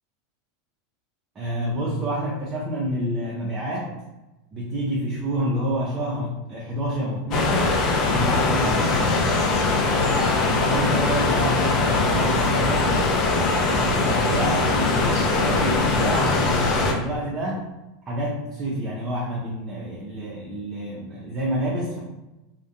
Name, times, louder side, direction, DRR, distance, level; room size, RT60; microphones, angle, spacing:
voice 1, 1.4-3.9 4.5-7.8 8.1-9.2 9.9-13.0 13.7-17.7 18.1-22.0, equal, 30° right, -5 dB, 0.5 m, -28 dB
sound 1, 7.3-16.9, left 3 dB, 45° left, 0.4 m, -21 dB
2.4 x 2.1 x 2.5 m, 1.0 s
hypercardioid pair, 90°, 0 cm